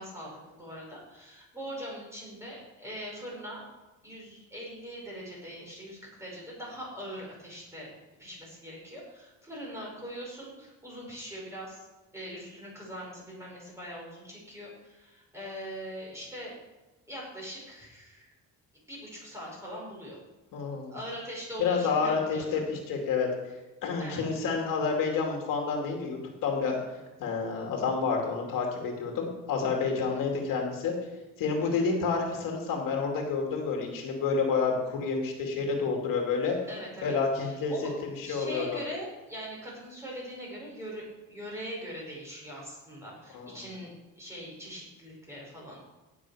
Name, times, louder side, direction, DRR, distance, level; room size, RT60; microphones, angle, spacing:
voice 1, 0.0-3.7 4.0-7.9 8.2-11.8 12.1-16.5 17.1-18.3 18.9-20.2 20.9-22.6 24.0-24.2 30.1-30.2 31.6-31.9 36.7-37.9 38.2-45.8, equal, 10° right, -4 dB, 5.1 m, -42 dB
voice 2, 20.5-20.9 21.6-23.3 23.8-26.8 27.2-30.9 31.4-36.6 37.0-37.7 38.0-38.8 43.3-43.6, left 5 dB, 80° left, 1 dB, 2.6 m, -29 dB
17.0 x 7.3 x 4.9 m, 1.1 s
cardioid pair, 150°, 33 cm